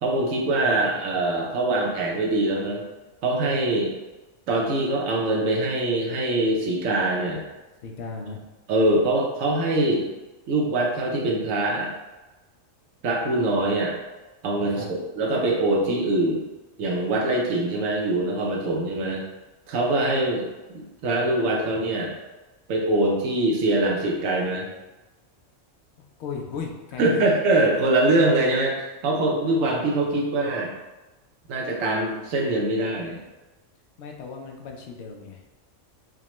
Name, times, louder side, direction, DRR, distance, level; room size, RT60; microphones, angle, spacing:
voice 1, 0.0-2.8 3.2-3.9 4.5-7.4 8.7-10.1 10.5-11.9 13.0-13.9 14.4-16.4 16.8-19.2 19.7-20.4 20.7-22.1 22.7-24.7 27.0-28.8 29.0-30.7 31.5-33.2, right 2 dB, 85° right, -2 dB, 1.1 m, -23 dB
voice 2, 7.8-8.5 14.7-14.9 26.2-27.3 34.0-35.5, left 5 dB, 65° left, 2 dB, 0.8 m, -36 dB
4.8 x 2.2 x 3.0 m, 1.1 s
omnidirectional pair, 1.3 m